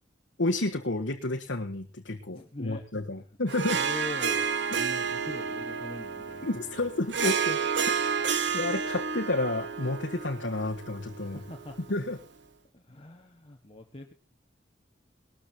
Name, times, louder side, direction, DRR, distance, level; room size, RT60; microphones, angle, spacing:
voice 1, 0.4-3.8 6.4-11.4 11.8-12.2, left 2 dB, 85° left, 1 dB, 1.5 m, -31 dB
voice 2, 2.3-2.8 3.8-6.9 11.2-11.8 12.7-14.1, left 2 dB, 30° left, 3 dB, 1.6 m, -42 dB
Harp, 3.5-12.1, right 6 dB, 70° right, 1.2 m, -31 dB
20.0 x 13.5 x 2.9 m, 0.31 s
head